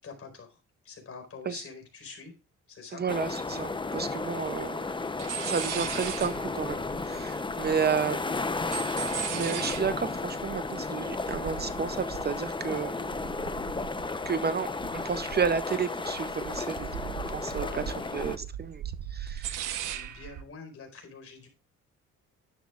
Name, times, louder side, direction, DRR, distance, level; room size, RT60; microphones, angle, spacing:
voice 1, 0.0-0.6 0.8-2.3 2.7-3.0 7.5-7.8 17.6-18.1 19.3-21.5, left 5 dB, 50° left, 4.6 m, -46 dB
voice 2, 2.9-4.9 5.4-8.2 9.3-13.1 14.3-17.8 18.1-18.8 19.1-19.7, right 6 dB, 35° right, 0.6 m, -32 dB
sound 1, 3.1-18.4, left 3 dB, 15° left, 0.7 m, -34 dB
sound 2, 4.9-5.0 5.2-8.0 8.3-14.5 14.8-15.8 16.1-20.4, right 10 dB, 85° right, 1.0 m, -39 dB
11.5 x 10.5 x 2.5 m
cardioid pair, 90°, 30 cm